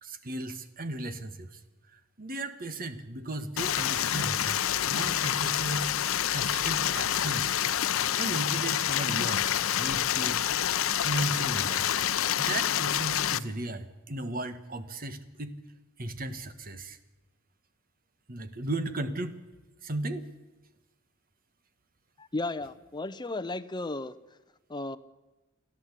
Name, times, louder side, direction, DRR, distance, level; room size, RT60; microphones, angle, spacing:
voice 1, 0.0-1.6 1.9-4.6 4.9-7.6 8.2-9.5 9.8-10.4 10.8-15.6 16.0-17.0 18.3-19.4 19.8-20.3, right 2 dB, 45° right, 11 dB, 1.4 m, -36 dB
Stream, 3.6-13.4, left 10 dB, 75° left, 0.6 m, -28 dB
voice 2, 22.2-24.1 24.7-25.0, left 2 dB, 20° left, 11 dB, 0.7 m, -34 dB
29.0 x 11.5 x 8.3 m, 1.1 s
head